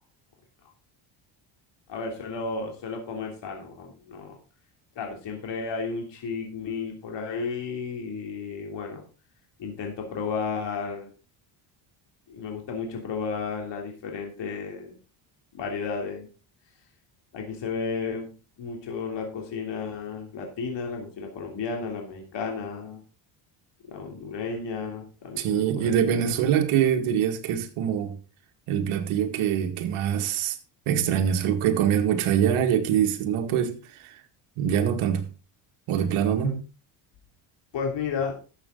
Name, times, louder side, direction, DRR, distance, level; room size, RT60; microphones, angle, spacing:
voice 1, 1.9-4.4 4.9-9.0 9.6-11.1 12.3-15.0 15.5-16.3 17.3-18.3 18.6-23.0 23.9-26.3 36.4-36.5 37.7-38.3, left 5 dB, 55° left, 3.2 m, -33 dB
voice 2, 25.4-28.1 28.7-30.6 30.9-34.1 34.6-35.2 35.9-36.6, right 9 dB, 80° right, 2.0 m, -24 dB
12.5 x 8.1 x 3.9 m
cardioid pair, 100°, 50 cm